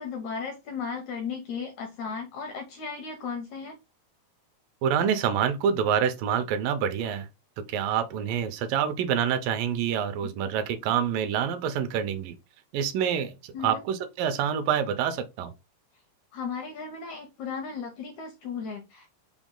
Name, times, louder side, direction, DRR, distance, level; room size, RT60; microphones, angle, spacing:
voice 1, 0.0-3.8 13.5-13.8 16.3-19.1, left 5 dB, 75° left, 1.7 m, -35 dB
voice 2, 4.8-7.3 7.7-12.3 12.7-15.5, right 8 dB, 80° right, 2.2 m, -27 dB
6.0 x 2.2 x 3.7 m
omnidirectional pair, 4.2 m